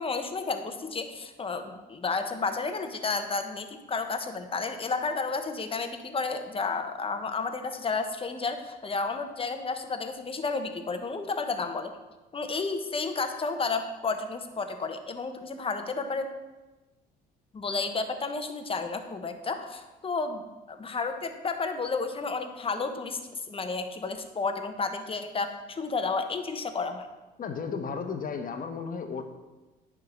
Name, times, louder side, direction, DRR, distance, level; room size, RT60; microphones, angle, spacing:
voice 1, 0.0-11.9 12.3-16.3 17.5-27.1, left 4 dB, 25° left, 7 dB, 0.9 m, -32 dB
voice 2, 27.4-29.2, left 5 dB, 45° left, 6 dB, 1.1 m, -34 dB
9.6 x 3.7 x 6.0 m, 1.1 s
supercardioid pair, 80°, 20 cm